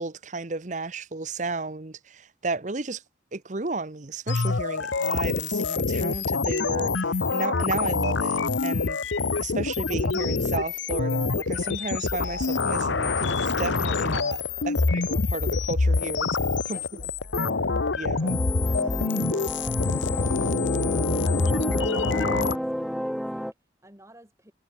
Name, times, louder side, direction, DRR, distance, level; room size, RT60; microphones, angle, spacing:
voice 1, 0.0-3.0 3.3-16.3 16.6-16.8 17.3-17.6 18.0-18.4, right 3 dB, 40° right, 0.9 m, -33 dB
sound 1, 4.3-22.6, left 4 dB, 80° left, 1.0 m, -26 dB
voice 2, 14.6-15.3 16.7-18.4 18.8-24.5, equal, 15° right, 5.7 m, -51 dB
sound 2, 18.2-23.5, equal, ahead, 2.4 m, -31 dB
head